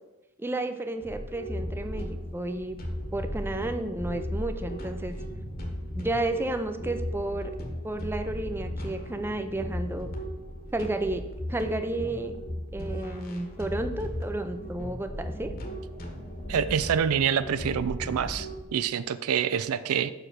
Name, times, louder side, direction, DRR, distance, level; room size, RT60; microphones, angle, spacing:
voice 1, 0.4-2.8 3.1-5.1 5.9-7.5 7.8-10.1 10.7-12.3 12.7-15.5, right 2 dB, 10° right, 7 dB, 0.4 m, -32 dB
sound 1, 1.0-18.6, equal, 45° left, 1.3 m, -36 dB
voice 2, 16.5-20.1, right 7 dB, 80° right, 14 dB, 0.4 m, -26 dB
5.8 x 4.9 x 6.6 m, 1.0 s
head